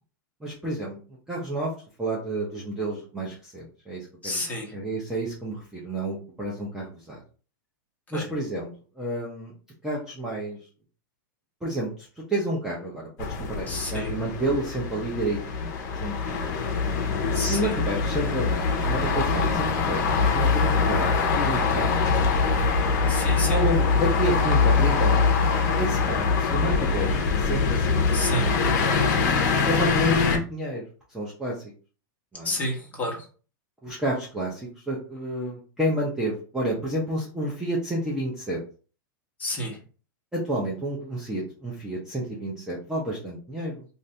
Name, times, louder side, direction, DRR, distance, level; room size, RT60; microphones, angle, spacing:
voice 1, 0.4-1.0 1.3-1.7 2.0-4.4 4.7-7.2 8.1-8.7 9.0-9.5 9.8-10.6 11.6-11.9 12.2-13.1 13.4-15.7 16.0-16.1 17.3-22.1 22.4-22.7 23.5-25.4 25.7-28.1 28.4-28.7 29.6-31.6 32.3-32.5 33.8-38.6 40.3-43.9, right 1 dB, 5° right, -6 dB, 0.7 m, -30 dB
voice 2, 4.2-4.8 8.1-8.3 13.7-14.1 17.3-17.7 23.1-23.6 28.1-28.5 32.4-33.2 39.4-39.8, left 1 dB, 15° left, -2 dB, 1.1 m, -30 dB
sound 1, 13.2-30.4, left 4 dB, 55° left, 0.7 m, -23 dB
2.6 x 2.6 x 3.3 m, 0.38 s
hypercardioid pair, 140°, 11 cm